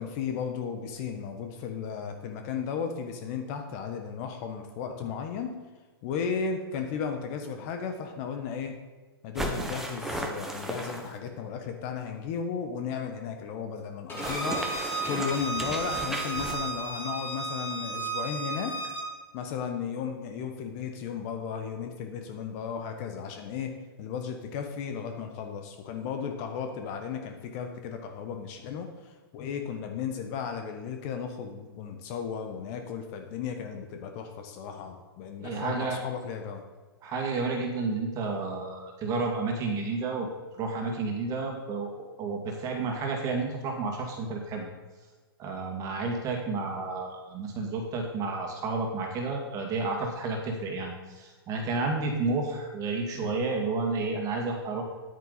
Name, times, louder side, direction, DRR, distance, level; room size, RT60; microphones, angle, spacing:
voice 1, 0.0-5.5 6.0-8.7 9.2-14.6 15.0-18.7 19.3-23.7 24.0-36.6, left 6 dB, 40° left, 5 dB, 1.2 m, -35 dB
sound 1, 9.4-11.3 14.1-16.7, right 1 dB, 5° right, 1.2 m, -34 dB
Bowed string instrument, 14.1-19.1, right 4 dB, 15° left, 3.3 m, -34 dB
voice 2, 35.4-36.0 37.0-40.3 40.6-41.9 42.2-44.7 45.4-54.8, right 3 dB, 25° right, 1 dB, 2.2 m, -31 dB
9.8 x 8.9 x 4.2 m, 1.3 s
hypercardioid pair, 125°, 13 cm